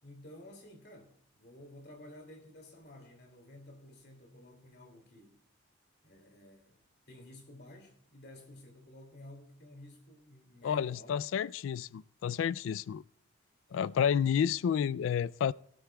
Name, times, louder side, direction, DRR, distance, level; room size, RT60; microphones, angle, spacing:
voice 1, 0.0-5.4 6.0-11.3 13.7-13.9, left 1 dB, 55° left, 2.5 m, -53 dB
voice 2, 10.6-13.0 13.7-15.5, left 8 dB, 80° left, 0.3 m, -30 dB
17.5 x 12.5 x 2.3 m
head